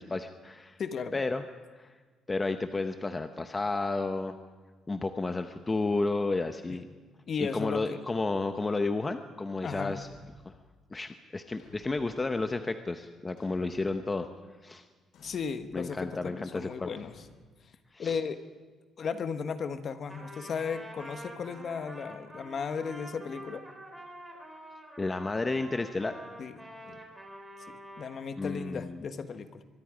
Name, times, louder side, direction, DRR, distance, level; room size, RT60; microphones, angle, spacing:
voice 1, 0.0-0.8 1.1-1.4 1.8-1.9 2.3-4.4 4.9-6.9 7.4-10.1 10.4-10.6 10.9-14.3 14.6-14.8 15.7-16.9 17.9-18.2 25.0-26.1 28.4-29.0, left 3 dB, 15° left, 8 dB, 0.8 m, -32 dB
voice 2, 0.8-1.2 6.7-6.8 7.3-8.0 9.6-10.0 15.2-17.1 18.0-18.4 19.0-23.6 26.4-27.0 27.7-29.6, left 6 dB, 40° left, 9 dB, 1.3 m, -35 dB
Thump thud, 9.9-10.5 11.6-12.2 13.4-13.9 15.1-15.6 17.0-17.3, left 2 dB, 70° left, 7.7 m, -56 dB
Trumpet, 20.1-28.2, right 1 dB, 10° right, 3.5 m, -47 dB
24.0 x 22.5 x 5.1 m, 1.4 s
cardioid pair, 155°, 0 cm